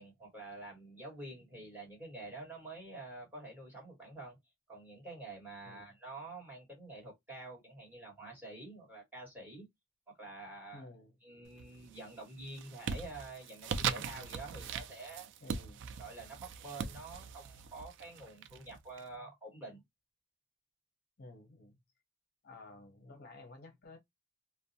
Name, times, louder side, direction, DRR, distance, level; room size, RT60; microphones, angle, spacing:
voice 1, 0.0-4.4 4.7-9.7 10.1-10.9 11.2-15.3 16.0-19.8, right 2 dB, 10° right, 1.5 m, -48 dB
voice 2, 10.7-11.2 15.4-15.8 21.2-21.8 22.4-24.0, left 2 dB, 50° left, 0.6 m, -53 dB
sound 1, 11.5-12.0 12.4-19.0, right 6 dB, 60° right, 0.3 m, -40 dB
2.5 x 2.1 x 2.6 m
head